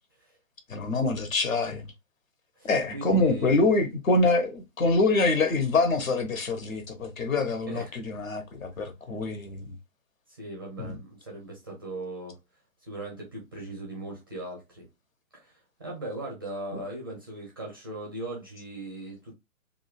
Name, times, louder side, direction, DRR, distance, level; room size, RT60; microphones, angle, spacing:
voice 1, 0.7-1.8 2.6-9.7 10.8-10.9, left 3 dB, 70° left, 1.0 m, -25 dB
voice 2, 2.6-3.7 7.7-7.9 10.4-12.4 12.8-14.9 15.3-19.3, right 1 dB, 15° right, 0.4 m, -39 dB
3.6 x 2.1 x 2.2 m
figure-of-eight pair, 130°, 42 cm